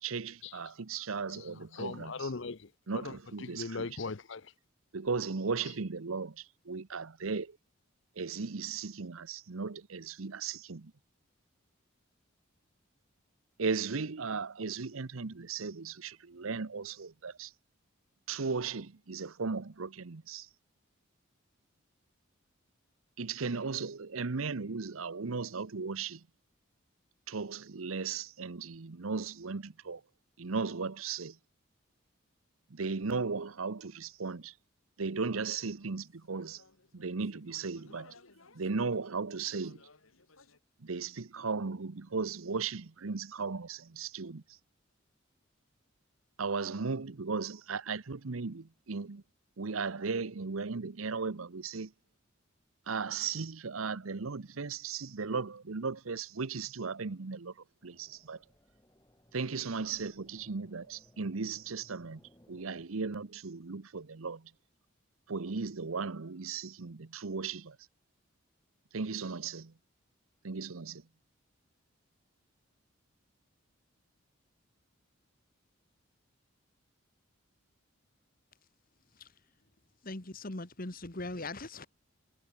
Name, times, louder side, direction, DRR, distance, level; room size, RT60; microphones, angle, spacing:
voice 1, 0.0-2.3 2.9-3.9 4.9-7.6 8.2-10.9 13.6-17.5 18.3-20.5 23.2-26.3 27.3-30.0 30.4-31.4 32.7-34.5 35.0-36.6 36.9-38.2 38.5-39.8 40.8-44.6 46.4-49.2 49.6-51.9 52.9-58.4 59.3-62.2 62.5-64.5 65.3-67.8 68.9-69.7 70.4-71.0, right 4 dB, 85° right, 0.9 m, -36 dB
voice 2, 1.3-4.5, left 4 dB, 65° left, 0.8 m, -40 dB
sound 1, 35.5-40.6, left 3 dB, 90° left, 3.1 m, -61 dB
sound 2, 57.8-62.9, equal, 15° left, 4.1 m, -63 dB
voice 3, 80.0-81.9, left 2 dB, 45° left, 1.8 m, -40 dB
head